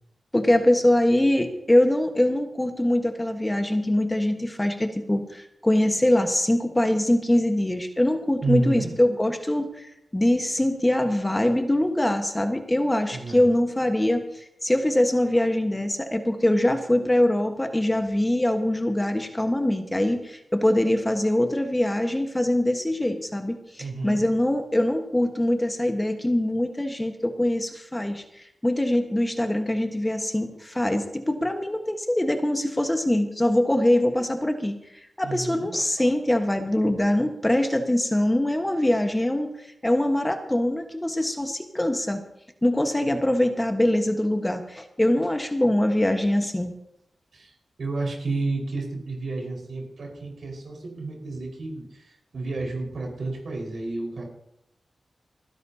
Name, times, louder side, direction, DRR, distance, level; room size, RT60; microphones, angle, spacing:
voice 1, 0.3-34.8 35.2-39.5 39.8-42.2 42.6-46.7, left 1 dB, 15° left, 5 dB, 1.4 m, -23 dB
voice 2, 8.4-8.9 13.1-13.4 23.8-24.3 35.2-35.7 43.0-43.2 47.3-54.2, right 3 dB, 70° right, 0 dB, 5.0 m, -31 dB
30.0 x 10.5 x 2.9 m, 0.81 s
cardioid pair, 60°, 0 cm